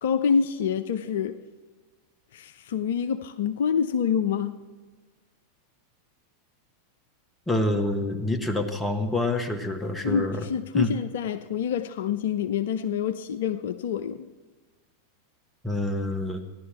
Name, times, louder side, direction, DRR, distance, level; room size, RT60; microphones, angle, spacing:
voice 1, 0.0-1.4 2.3-4.6 10.0-14.3, left 7 dB, 60° left, 9 dB, 0.5 m, -27 dB
voice 2, 7.5-10.5 10.7-10.9 15.6-16.4, left 2 dB, 10° left, 5 dB, 1.4 m, -27 dB
16.0 x 11.0 x 4.4 m, 1.3 s
figure-of-eight pair, 90°, 0 cm